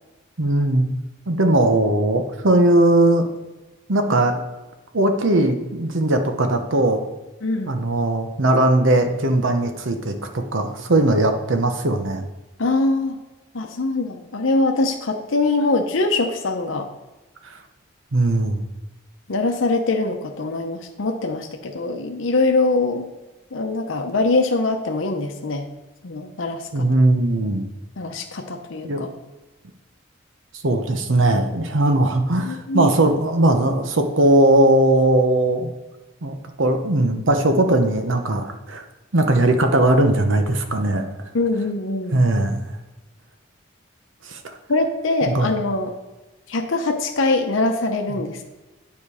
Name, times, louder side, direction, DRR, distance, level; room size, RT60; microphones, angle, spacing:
voice 1, 0.4-0.9 1.3-3.3 3.9-4.4 4.9-7.0 7.7-12.2 18.1-18.6 26.7-27.7 28.8-29.0 30.6-35.7 36.2-38.8 39.1-41.0 42.1-42.6 44.3-44.5 45.3-45.5, right 1 dB, 80° right, 6 dB, 1.0 m, -19 dB
voice 2, 7.4-7.8 12.6-13.2 13.5-16.9 19.3-23.1 23.5-25.7 26.0-26.9 28.0-29.1 32.4-32.9 41.3-42.2 44.7-45.9 46.5-48.4, left 2 dB, 85° left, 4 dB, 0.8 m, -23 dB
9.5 x 5.2 x 4.9 m, 1.1 s
head